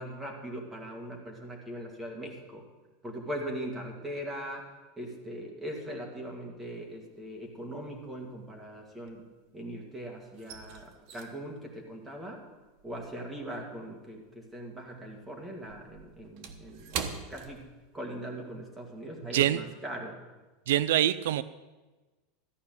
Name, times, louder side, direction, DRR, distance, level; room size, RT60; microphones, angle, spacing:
voice 1, 0.0-2.6 3.0-4.6 5.0-9.2 9.5-12.4 12.8-17.6 17.9-20.1, right 1 dB, 5° right, -1 dB, 2.1 m, -40 dB
sound 1, 6.9-7.5 7.7-9.7 10.0-14.7 15.0-18.3 18.6-18.8 19.3-19.5, right 7 dB, 50° right, 1.1 m, -43 dB
voice 2, 20.7-21.4, right 12 dB, 85° right, 15 dB, 0.4 m, -24 dB
14.0 x 5.8 x 9.3 m, 1.2 s
supercardioid pair, 165°, 0 cm